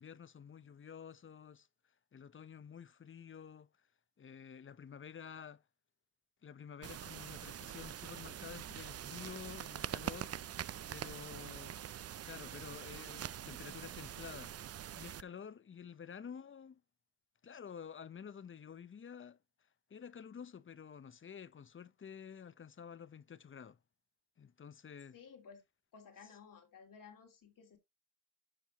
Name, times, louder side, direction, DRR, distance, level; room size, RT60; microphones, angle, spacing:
voice 1, 0.0-1.7 2.1-3.7 4.2-5.6 6.4-10.3 10.9-11.8 12.2-14.5 14.9-16.8 17.4-19.4 19.9-23.8 24.4-25.1, left 7 dB, 40° left, 0.7 m, -50 dB
sound 1, 6.8-15.2, right 10 dB, 50° right, 0.4 m, -44 dB
voice 2, 11.3-11.6 25.1-25.6 25.9-27.8, left 6 dB, 80° left, 2.6 m, -56 dB
13.0 x 4.5 x 2.9 m
cardioid pair, 75°, 32 cm